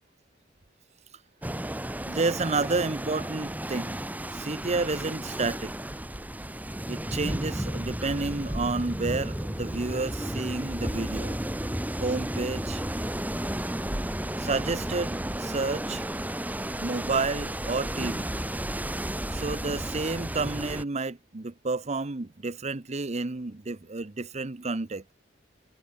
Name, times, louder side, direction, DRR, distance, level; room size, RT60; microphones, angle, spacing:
sound 1, 1.4-20.8, right 1 dB, 10° right, 1.4 m, -33 dB
voice 1, 2.1-4.0 4.3-5.7 6.9-11.4 12.0-12.8 14.4-16.0 16.8-18.3 19.3-25.1, right 3 dB, 35° right, 0.9 m, -30 dB
head